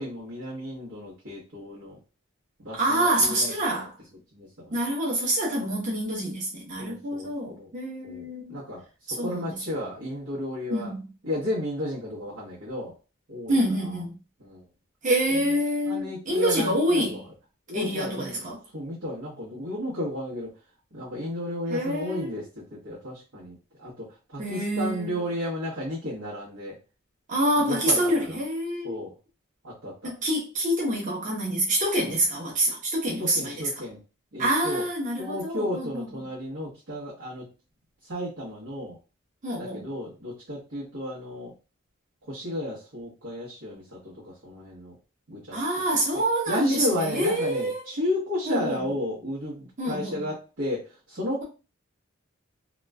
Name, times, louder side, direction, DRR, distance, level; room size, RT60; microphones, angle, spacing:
voice 1, 0.0-2.0 2.6-3.5 3.8-3.9 4.3-4.7 6.8-7.7 8.0-8.8 9.1-10.9 11.2-12.9 13.3-13.6 13.8-13.9 14.4-14.6 15.3-15.4 15.9-17.2 17.7-18.4 18.7-20.5 20.9-26.8 27.6-28.4 28.8-29.1 29.6-30.1 32.0-32.1 33.2-34.0 34.3-34.8 35.2-37.5 38.0-39.0 39.6-41.5 42.3-44.9 45.3-45.6 46.1-46.2 46.5-51.4, left 1 dB, 85° right, 1.1 m, -33 dB
voice 2, 2.7-3.9 4.7-8.6 9.2-9.6 10.7-11.0 13.5-14.1 15.0-17.2 17.7-18.6 21.7-22.3 24.4-25.2 27.3-29.0 30.0-33.7 34.4-36.0 39.4-39.9 45.5-47.8 48.5-48.9 49.8-50.2, right 1 dB, 40° right, 0.8 m, -26 dB
3.0 x 2.3 x 2.2 m
head